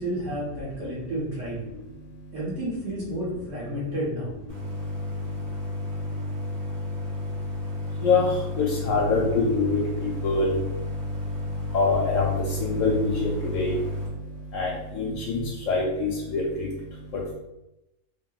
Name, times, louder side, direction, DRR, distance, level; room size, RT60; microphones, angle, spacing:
voice 1, 0.0-1.6 2.3-4.3 11.6-11.8, right 1 dB, 55° right, -7 dB, 1.4 m, -31 dB
voice 2, 1.7-2.3 4.5-17.3, left 3 dB, 65° left, -3 dB, 0.9 m, -27 dB
Idling, 4.5-14.1, left 2 dB, 80° right, 1.5 m, -32 dB
2.9 x 2.8 x 2.3 m, 0.92 s
omnidirectional pair, 1.6 m